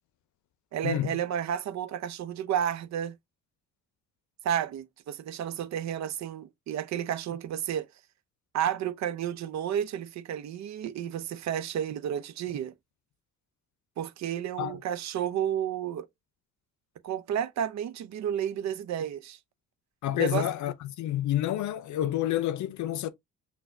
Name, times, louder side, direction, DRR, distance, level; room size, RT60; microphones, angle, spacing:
voice 1, 0.7-3.2 4.4-7.9 8.5-12.7 14.0-16.1 17.0-19.4 20.1-20.5, right 10 dB, 65° right, 0.6 m, -31 dB
voice 2, 20.0-23.1, left 13 dB, 70° left, 0.6 m, -29 dB
5.8 x 2.3 x 2.5 m
cardioid pair, 90°, 30 cm